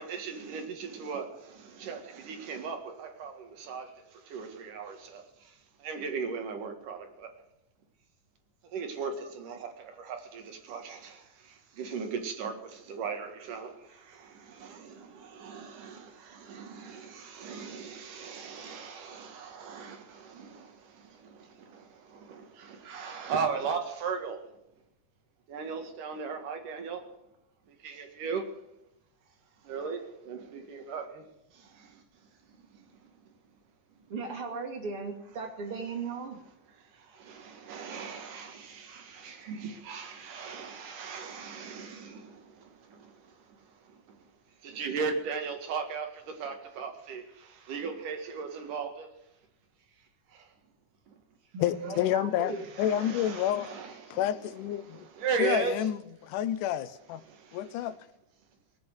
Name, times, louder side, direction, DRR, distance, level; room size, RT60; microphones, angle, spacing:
voice 1, 0.0-3.9 4.3-5.2 5.8-7.3 8.7-11.2 11.8-13.8 14.2-20.7 21.3-21.4 22.1-24.4 25.5-27.0 27.8-28.5 29.7-30.0 30.3-31.2 37.2-42.4 44.6-46.1 46.4-47.2 47.7-49.1 52.7-54.5 54.9-55.9, right 5 dB, 75° right, 3.5 m, -37 dB
voice 2, 34.1-36.4 39.5-39.8 51.5-52.6, right 4 dB, 45° right, 3.2 m, -37 dB
voice 3, 51.6-52.5 52.8-53.7 54.1-55.1 55.4-57.2 57.5-57.9, left 11 dB, 80° left, 2.3 m, -29 dB
18.5 x 8.9 x 8.0 m
omnidirectional pair, 3.7 m